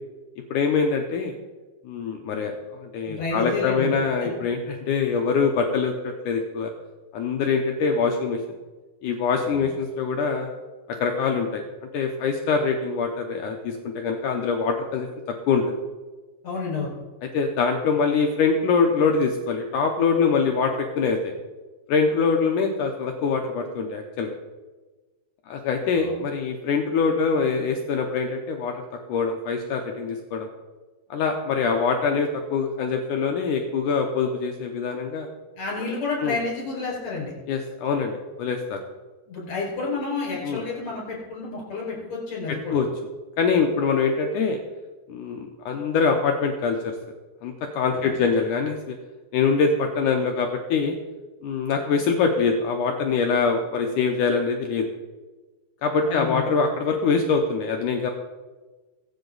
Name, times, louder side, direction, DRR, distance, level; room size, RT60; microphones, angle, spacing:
voice 1, 0.5-1.3 1.9-6.7 7.1-8.4 9.0-10.5 10.9-11.6 11.9-15.1 15.5-15.6 17.2-21.3 21.9-24.4 25.5-28.7 29.1-30.5 31.1-35.3 36.2-36.4 37.5-38.1 38.4-38.8 40.4-40.6 42.7-42.9 43.4-44.6 45.1-46.9 47.4-49.0 49.3-51.0 51.4-54.9 55.8-58.1, left 5 dB, 75° left, 3 dB, 1.9 m, -24 dB
voice 2, 3.1-4.3 9.5-9.6 16.4-16.9 25.9-26.1 35.6-37.3 39.3-42.8 47.9-48.1 56.0-56.4, left 3 dB, 45° left, -3 dB, 6.1 m, -30 dB
23.0 x 8.0 x 4.0 m, 1.3 s
omnidirectional pair, 4.6 m